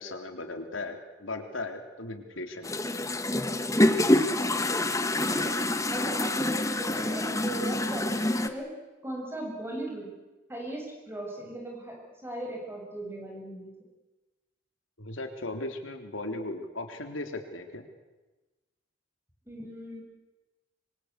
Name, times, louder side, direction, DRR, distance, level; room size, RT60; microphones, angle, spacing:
voice 1, 0.0-2.7 15.0-17.9, left 2 dB, 90° left, 5 dB, 3.6 m, -37 dB
sound 1, 2.6-8.5, left 1 dB, 15° left, 1.5 m, -26 dB
voice 2, 5.2-5.5 5.9-8.7 9.0-10.1 10.5-13.7 19.5-20.0, right 1 dB, 10° right, 0 dB, 7.4 m, -38 dB
25.5 x 25.5 x 8.3 m, 1.1 s
head